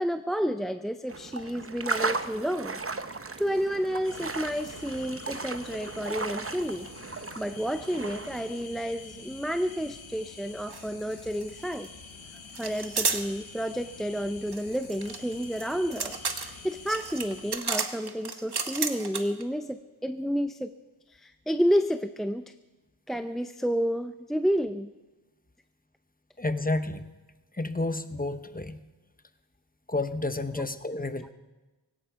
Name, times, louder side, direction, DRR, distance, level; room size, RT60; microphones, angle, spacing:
voice 1, 0.0-2.8 3.1-11.9 12.6-20.7 21.1-22.5 23.1-24.9 30.6-30.7, equal, ahead, 9 dB, 0.5 m, -30 dB
sound 1, 1.1-8.7, right 3 dB, 30° right, 0.8 m, -36 dB
sound 2, 4.0-17.6, left 5 dB, 85° left, 1.4 m, -47 dB
sound 3, 10.7-10.9 11.1-11.9 12.6-13.2 14.5-19.4, right 4 dB, 55° right, 1.3 m, -32 dB
voice 2, 26.4-27.1 27.5-28.8 29.9-31.3, left 2 dB, 20° left, 11 dB, 0.9 m, -30 dB
17.5 x 17.0 x 4.7 m, 1.2 s
wide cardioid pair, 55°, 46 cm